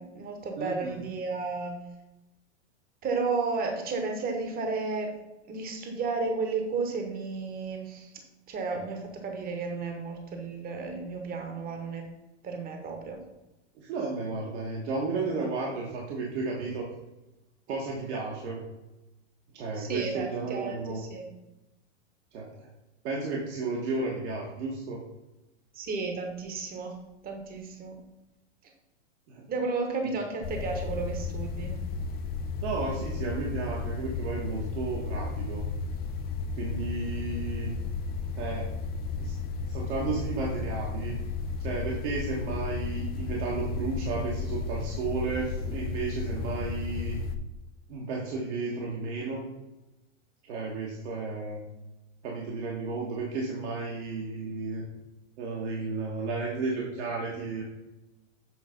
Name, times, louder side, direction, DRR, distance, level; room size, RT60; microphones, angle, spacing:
voice 1, 0.0-1.8 3.0-5.1 5.5-8.1 8.5-12.0 12.4-13.2 19.8-21.3 25.7-26.9 27.2-28.0 29.5-31.8, right 4 dB, 25° right, 3 dB, 1.2 m, -33 dB
voice 2, 0.6-1.0 13.8-16.9 17.7-18.6 19.5-21.0 22.3-22.7 23.0-25.0 29.3-29.4 32.6-35.7 36.6-37.8 38.3-38.7 39.2-39.4 39.6-41.1 41.6-47.2 47.9-49.4 50.5-51.6 52.2-54.8 55.4-57.6, right 3 dB, 65° right, -3 dB, 1.6 m, -33 dB
sound 1, 30.4-47.4, left 4 dB, 25° left, 0.5 m, -33 dB
7.8 x 3.2 x 5.2 m, 0.98 s
hypercardioid pair, 125°, 36 cm